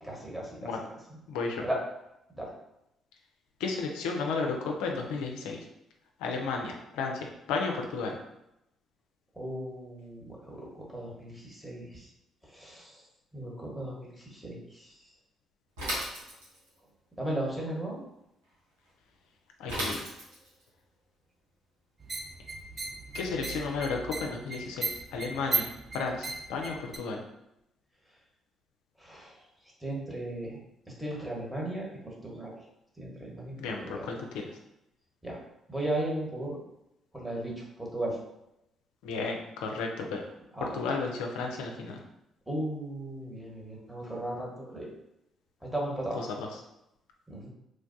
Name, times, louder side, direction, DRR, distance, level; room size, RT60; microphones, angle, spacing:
voice 1, 0.0-0.7 1.6-1.8 2.3-2.5 9.3-12.1 12.4-13.0 13.3-15.1 17.2-18.0 29.0-29.4 29.8-30.6 30.9-32.5 33.0-33.5 33.8-34.0 35.2-35.4 35.7-36.6 37.1-38.2 40.5-40.8 42.5-44.9 45.6-46.3 47.3-47.5, right 1 dB, 10° right, -3 dB, 1.2 m, -36 dB
voice 2, 1.3-1.6 3.6-5.6 6.2-8.2 19.6-20.1 23.1-27.2 33.6-34.6 39.0-40.3 40.6-42.0 46.2-46.5, left 4 dB, 80° left, 1 dB, 0.3 m, -33 dB
Bicycle / Mechanisms, 15.8-16.8 19.7-20.6, equal, 90° right, 0.9 m, -35 dB
sound 1, 22.0-27.0, right 3 dB, 35° right, 0.4 m, -36 dB
3.2 x 2.2 x 2.6 m, 0.85 s
hypercardioid pair, 50°, 0 cm